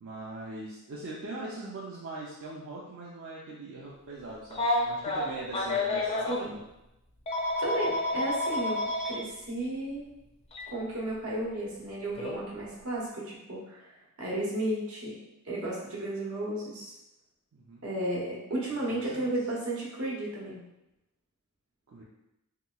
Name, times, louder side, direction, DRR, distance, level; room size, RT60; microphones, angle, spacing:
voice 1, 0.0-6.6 17.5-17.8 18.8-19.3 21.9-22.0, right 2 dB, 55° right, -5 dB, 0.4 m, -41 dB
Telephone, 4.5-6.4 7.3-9.2 10.5-10.7 12.2-12.4, left 2 dB, 25° left, 0.4 m, -29 dB
voice 2, 7.6-10.1 10.7-15.2 15.4-17.0 17.8-20.6, right 1 dB, 75° right, -5 dB, 0.9 m, -33 dB
2.9 x 2.8 x 2.3 m, 0.91 s
head